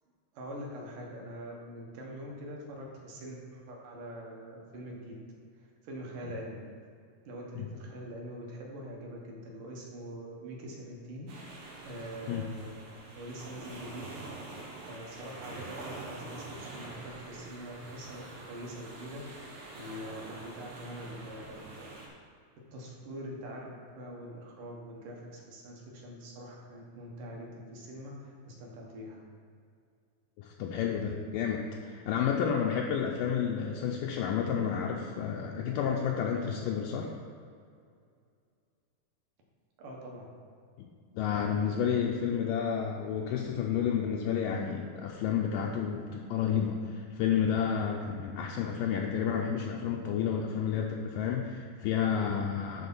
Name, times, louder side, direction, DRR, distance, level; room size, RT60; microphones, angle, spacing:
voice 1, 0.3-5.1 5.6-6.6 7.3-11.3 11.8-12.7 13.1-14.0 14.8-22.1 22.7-29.2 39.8-40.3, equal, 65° right, -1 dB, 2.6 m, -44 dB
sound 1, 11.3-22.1, right 2 dB, 85° right, 3.3 m, -46 dB
voice 2, 30.4-37.1 40.8-40.9 41.1-52.9, left 7 dB, 85° left, 0 dB, 1.9 m, -30 dB
11.0 x 3.8 x 5.4 m, 2.3 s
omnidirectional pair, 4.4 m